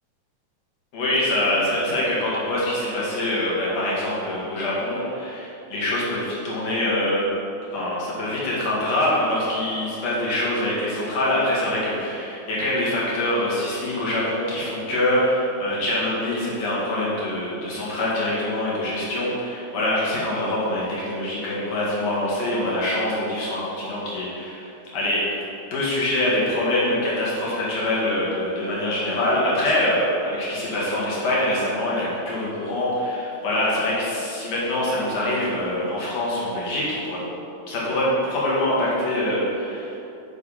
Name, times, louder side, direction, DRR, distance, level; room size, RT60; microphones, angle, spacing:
voice 1, 0.9-7.3 7.7-25.3 25.7-37.2 37.7-40.0, left 1 dB, 65° left, -7 dB, 3.0 m, -24 dB
10.0 x 3.4 x 5.6 m, 2.8 s
omnidirectional pair, 3.4 m